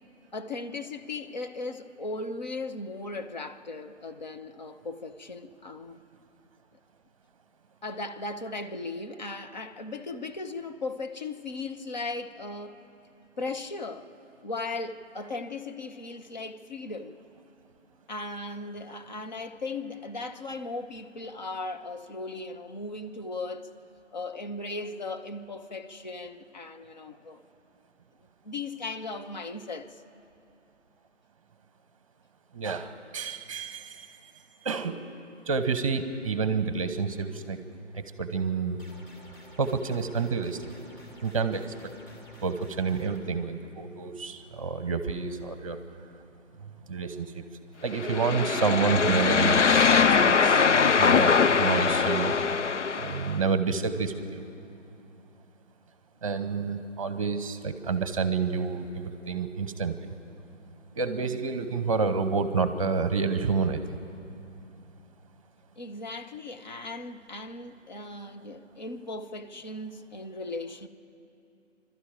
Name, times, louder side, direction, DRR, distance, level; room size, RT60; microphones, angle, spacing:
voice 1, 0.3-6.0 7.8-12.8 13.4-14.1 14.4-17.2 18.1-23.7 24.1-27.4 28.4-30.0 65.8-70.9, left 3 dB, 35° left, 1.0 m, -37 dB
voice 2, 32.5-34.1 34.6-35.1 35.5-37.6 37.9-38.8 39.6-40.7 41.2-41.9 42.4-45.8 46.9-47.4 47.8-50.6 51.0-52.3 53.0-54.4 56.2-59.9 61.0-64.0, right 5 dB, 25° right, 1.0 m, -29 dB
sound 1, 38.8-43.2, left 1 dB, 15° left, 2.5 m, -51 dB
sound 2, 47.9-53.4, left 5 dB, 70° left, 0.7 m, -22 dB
26.5 x 12.5 x 9.0 m
figure-of-eight pair, 145°, 38 cm